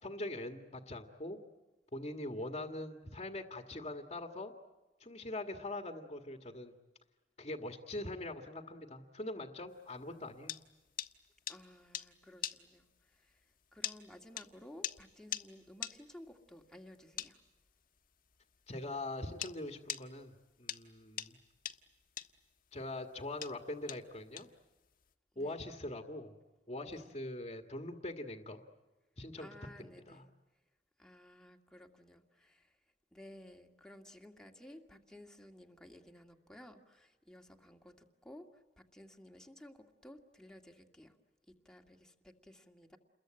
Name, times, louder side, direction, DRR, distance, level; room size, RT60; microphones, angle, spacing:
voice 1, 0.0-1.4 1.9-4.5 5.0-6.7 7.4-10.6 18.7-20.3 20.6-21.4 22.7-24.5 25.4-26.3 26.7-28.6 29.2-29.5 29.8-30.2, left 1 dB, 35° left, 3 dB, 1.8 m, -42 dB
sound 1, 9.9-19.6 19.9-25.1, left 10 dB, 55° left, 1.4 m, -43 dB
voice 2, 11.5-17.4 25.3-25.6 26.8-27.1 29.4-30.3 31.0-32.8 33.1-41.1 41.6-43.0, left 1 dB, 5° left, 2 dB, 2.1 m, -56 dB
29.5 x 22.0 x 8.9 m, 1.2 s
head